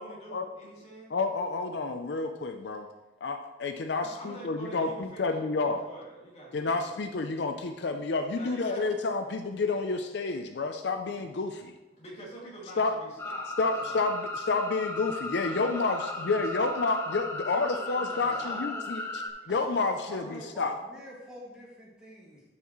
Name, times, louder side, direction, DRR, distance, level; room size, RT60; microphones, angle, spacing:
voice 1, 0.0-1.1 4.0-5.3 5.6-7.0 8.3-9.0 12.0-14.1 15.4-16.8 17.5-18.7, right 1 dB, 35° left, -5 dB, 2.5 m, -45 dB
voice 2, 1.1-2.9 3.2-5.9 6.5-11.7 12.8-13.0 13.6-20.8, left 3 dB, 70° left, 7 dB, 0.5 m, -30 dB
sound 1, 13.2-19.3, left 2 dB, 15° left, 0.6 m, -36 dB
voice 3, 18.1-19.2 19.5-22.4, equal, 5° right, -6 dB, 2.1 m, -45 dB
12.0 x 5.8 x 3.1 m, 1.1 s
head